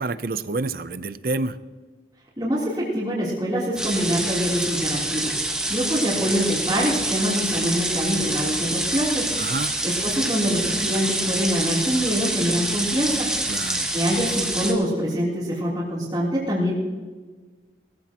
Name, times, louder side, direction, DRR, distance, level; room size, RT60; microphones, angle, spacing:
voice 1, 0.0-1.6 9.4-9.7 13.5-13.9, right 3 dB, 55° right, 14 dB, 0.6 m, -28 dB
voice 2, 2.4-5.4 5.7-9.3 9.8-13.3 13.9-16.7, equal, 20° right, -10 dB, 3.3 m, -24 dB
sound 1, 3.8-14.7, right 1 dB, 5° right, 1.3 m, -26 dB
19.0 x 14.5 x 3.0 m, 1.4 s
head